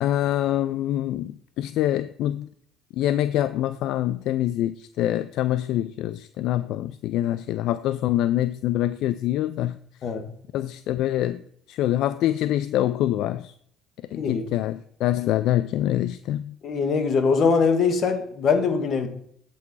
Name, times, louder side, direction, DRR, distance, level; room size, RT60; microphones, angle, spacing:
voice 1, 0.0-2.5 2.9-9.8 10.5-11.4 11.7-13.5 14.1-16.5, left 13 dB, 75° left, 0.4 m, -25 dB
voice 2, 14.1-14.5 16.6-19.1, left 5 dB, 55° left, 1.7 m, -22 dB
8.4 x 6.1 x 4.7 m
supercardioid pair, 90°, 0 cm